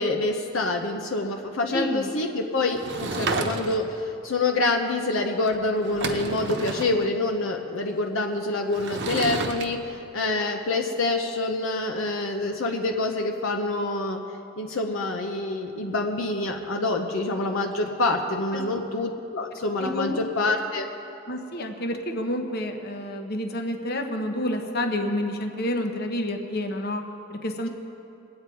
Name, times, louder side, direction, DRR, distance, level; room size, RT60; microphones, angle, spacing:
voice 1, 0.0-14.2 14.6-20.9, left 2 dB, 70° left, 2 dB, 0.8 m, -26 dB
voice 2, 1.7-2.2 18.5-18.6 19.8-20.2 21.3-27.0 27.3-27.7, left 1 dB, 50° left, 4 dB, 1.0 m, -29 dB
Sliding door / Wood, 2.7-4.0 5.5-5.6 5.8-6.9 8.7-9.7, right 3 dB, 55° right, 0.9 m, -30 dB
22.0 x 8.6 x 4.6 m, 2.8 s
head